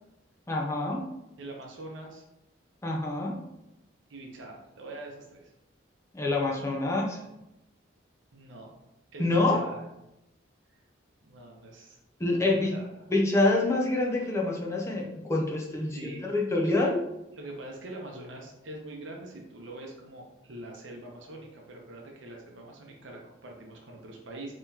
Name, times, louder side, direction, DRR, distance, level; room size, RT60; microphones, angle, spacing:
voice 1, 0.5-1.0 2.8-3.3 6.1-7.2 9.2-9.6 12.2-12.7 13.1-17.0, left 2 dB, 15° left, -1 dB, 0.4 m, -26 dB
voice 2, 1.4-2.3 4.1-5.5 8.3-8.7 9.1-9.8 11.3-12.0 12.2-13.1 15.8-16.7 17.3-24.5, right 1 dB, 75° right, 0 dB, 0.6 m, -44 dB
3.8 x 3.0 x 2.7 m, 0.90 s
head